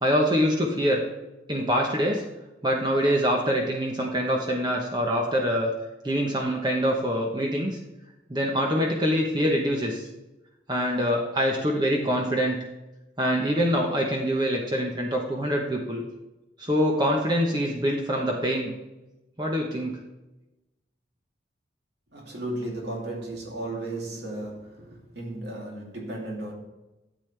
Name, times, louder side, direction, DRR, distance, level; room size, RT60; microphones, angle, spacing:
voice 1, 0.0-1.0 1.5-2.3 2.6-5.7 6.0-7.8 8.3-10.1 10.7-12.6 13.2-16.0 16.6-18.7 19.4-20.0, equal, 25° right, 0 dB, 1.0 m, -25 dB
voice 2, 22.1-26.5, right 1 dB, 60° right, -2 dB, 2.8 m, -35 dB
12.5 x 8.3 x 3.3 m, 1.0 s
head